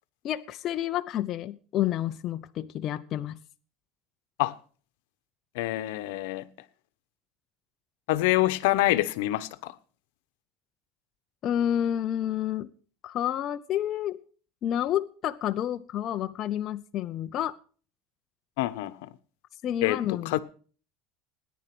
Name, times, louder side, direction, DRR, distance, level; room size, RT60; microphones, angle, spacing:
voice 1, 0.2-3.4 11.4-12.7 13.0-14.2 14.6-17.6 19.6-20.4, left 11 dB, 35° left, 0.7 m, -29 dB
voice 2, 5.5-6.5 8.1-9.7 18.6-19.1 19.8-20.4, left 17 dB, 80° left, 1.0 m, -26 dB
17.5 x 10.5 x 6.0 m
cardioid pair, 160°, 0 cm